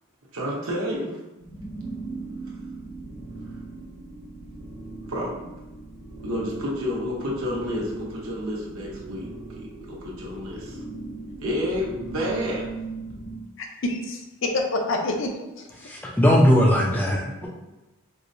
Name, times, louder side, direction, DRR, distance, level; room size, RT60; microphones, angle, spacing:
voice 1, 0.3-1.2 5.1-5.5 6.2-9.3 9.6-10.8 11.4-12.7 17.4-17.5, equal, 80° right, -4 dB, 0.9 m, -30 dB
sound 1, 1.4-13.4, right 3 dB, 60° right, 1.2 m, -39 dB
voice 2, 13.6-15.7, left 2 dB, 60° left, 3 dB, 0.5 m, -27 dB
voice 3, 15.8-17.5, equal, 10° left, -2 dB, 0.3 m, -19 dB
4.6 x 2.1 x 2.6 m, 1.0 s
head